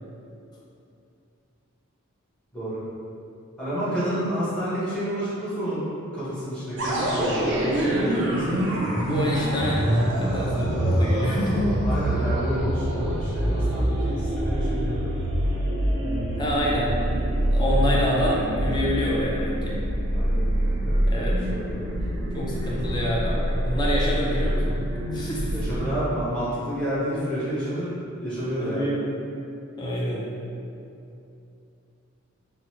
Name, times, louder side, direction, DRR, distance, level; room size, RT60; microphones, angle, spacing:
voice 1, 3.6-5.8 6.1-8.6 11.8-15.1 20.1-20.4 20.8-21.9 25.5-27.9 28.2-28.9, equal, 5° left, -12 dB, 0.8 m, -29 dB
sound 1, 6.8-26.0, equal, 55° right, 0.4 m, -25 dB
voice 2, 9.0-11.8 16.4-19.8 21.1-21.4 22.3-25.6 28.6-29.1 29.8-30.3, equal, 20° left, -5 dB, 0.3 m, -27 dB
2.9 x 2.0 x 2.9 m, 2.6 s
head